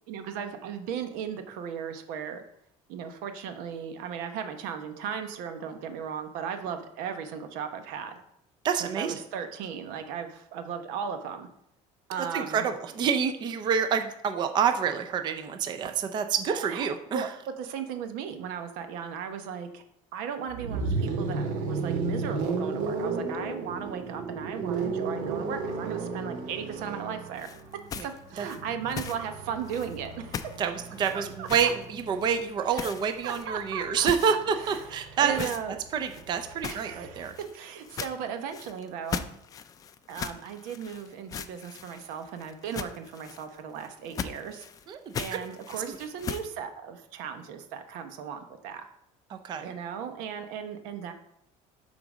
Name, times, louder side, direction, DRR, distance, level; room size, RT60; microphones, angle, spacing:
voice 1, 0.1-2.4 2.9-8.1 8.8-11.5 12.1-12.6 16.5-17.3 17.6-19.8 20.1-27.5 27.9-30.4 31.1-31.7 32.7-32.9 33.2-35.8 36.6-37.3 37.5-39.3 40.1-44.7 45.2-48.8 49.6-51.1, right 7 dB, 90° right, 7 dB, 1.0 m, -36 dB
voice 2, 8.6-9.2 12.3-17.3 28.0-28.1 28.4-28.5 30.6-37.3 44.9-45.0 45.9-46.0 49.3-49.7, right 7 dB, 30° right, 7 dB, 0.5 m, -28 dB
sound 1, 20.5-32.4 33.7-37.3, right 4 dB, 70° right, 1.4 m, -34 dB
sound 2, 27.3-29.3 29.6-30.1 30.3-30.6 30.9-31.8 32.2-32.4 32.7-33.7 34.0-35.0 35.3-35.6 36.0-46.5, left 7 dB, 25° left, 0.4 m, -39 dB
8.6 x 3.9 x 6.1 m, 0.75 s
cardioid pair, 170°, 14 cm